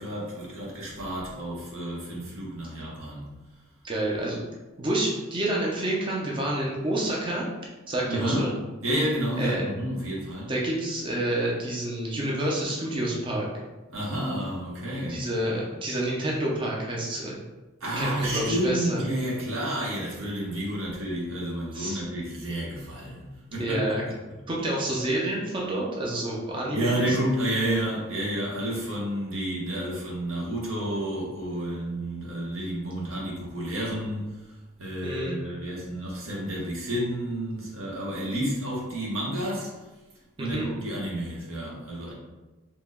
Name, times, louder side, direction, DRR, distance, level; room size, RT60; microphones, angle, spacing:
voice 1, 0.0-3.2 8.1-8.5 8.8-10.5 13.9-15.2 17.8-23.8 26.7-39.7 40.4-42.1, right 1 dB, 85° right, -4 dB, 1.0 m, -30 dB
voice 2, 3.8-4.4 4.8-7.4 7.9-8.5 9.4-9.7 10.5-13.5 15.1-17.4 18.0-19.0 21.7-22.0 23.6-24.0 24.5-27.2 35.0-35.3 40.4-40.7, right 1 dB, 25° right, -3 dB, 0.5 m, -28 dB
2.8 x 2.2 x 3.4 m, 1.1 s
head